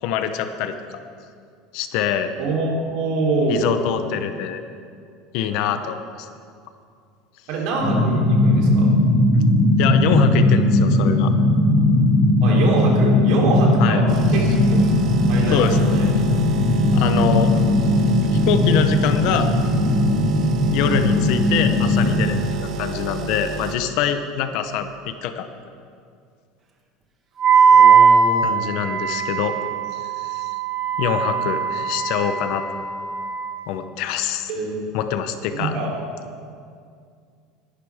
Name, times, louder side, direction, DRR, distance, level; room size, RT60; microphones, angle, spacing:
voice 1, 0.0-0.8 1.7-2.3 3.5-4.6 5.3-6.3 9.8-11.3 13.8-14.0 15.5-15.9 16.9-17.5 18.4-19.5 20.7-25.5 28.4-29.6 29.9-30.5 31.0-32.6 33.7-34.5 34.9-35.7, left 8 dB, 55° left, 9 dB, 0.9 m, -24 dB
voice 2, 2.4-3.7 7.5-8.9 12.4-14.6 15.3-16.1 27.7-28.7 34.5-34.9 35.6-35.9, right 3 dB, 60° right, -2 dB, 3.6 m, -25 dB
sound 1, 7.8-22.2, left 1 dB, 35° left, 3.0 m, -18 dB
sound 2, 14.1-23.8, right 5 dB, 40° right, 1.0 m, -31 dB
Wind instrument woodwind instrument, 27.4-33.5, right 6 dB, 25° right, 1.2 m, -19 dB
20.0 x 11.5 x 3.6 m, 2.3 s
cardioid pair, 155°, 0 cm